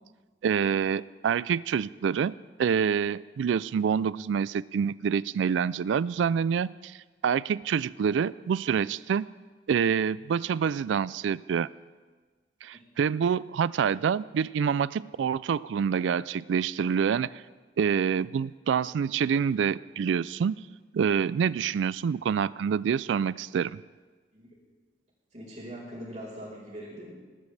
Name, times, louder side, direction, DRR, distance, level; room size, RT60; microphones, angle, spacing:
voice 1, 0.4-2.3 2.6-7.0 7.2-9.3 9.7-11.7 12.6-17.4 17.8-20.5 20.9-23.8, right 7 dB, 85° right, 20 dB, 0.3 m, -27 dB
voice 2, 25.3-27.1, equal, 40° right, -3 dB, 4.5 m, -41 dB
20.0 x 12.0 x 3.3 m, 1.4 s
head